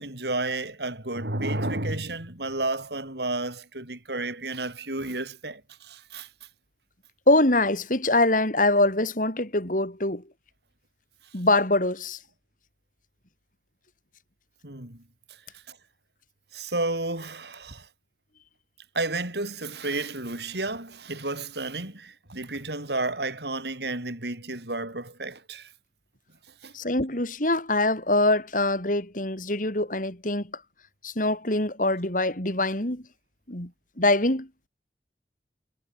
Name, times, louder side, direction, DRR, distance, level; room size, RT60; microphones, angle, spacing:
voice 1, 0.0-6.3 14.6-15.0 15.3-15.8 16.5-17.9 18.9-25.7 26.6-26.8, right 2 dB, 65° right, 5.0 m, -32 dB
voice 2, 7.3-10.2 11.3-12.2 26.7-30.6 31.0-33.0 33.5-33.7 34.0-34.5, left 2 dB, 45° left, 4.0 m, -24 dB
head